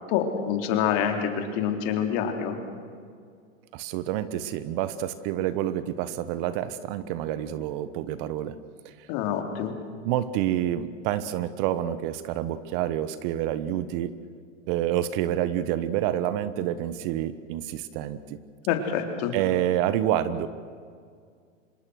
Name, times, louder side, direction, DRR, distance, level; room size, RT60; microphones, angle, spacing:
voice 1, 0.1-2.6 9.1-9.7 18.7-19.3, left 8 dB, 50° left, 4 dB, 3.5 m, -26 dB
voice 2, 3.7-8.5 8.8-8.9 10.0-14.1 14.7-18.4 19.3-20.5, right 12 dB, 45° right, 14 dB, 1.2 m, -28 dB
26.0 x 22.0 x 6.5 m, 2.1 s
hypercardioid pair, 125°, 39 cm